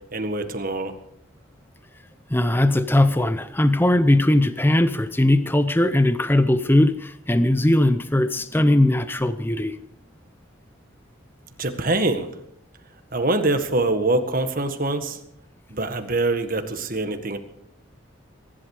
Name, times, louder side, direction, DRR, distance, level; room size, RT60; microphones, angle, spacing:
voice 1, 0.1-0.9 11.6-12.3 13.1-15.2 15.7-17.4, right 2 dB, 40° right, 7 dB, 1.7 m, -24 dB
voice 2, 2.3-9.8, left 1 dB, 10° left, 11 dB, 0.6 m, -19 dB
23.0 x 11.5 x 4.9 m, 0.76 s
head